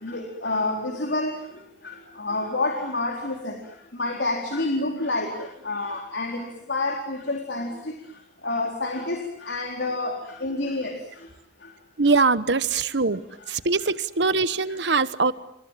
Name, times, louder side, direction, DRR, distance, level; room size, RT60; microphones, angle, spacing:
voice 1, 0.0-1.3 1.8-3.5 4.0-5.3 5.6-7.7 8.4-10.1 10.4-10.9, left 2 dB, 80° left, 2 dB, 4.0 m, -28 dB
voice 2, 12.0-13.2 13.5-15.3, right 4 dB, 85° right, 14 dB, 1.2 m, -22 dB
28.5 x 27.5 x 7.5 m, 0.78 s
head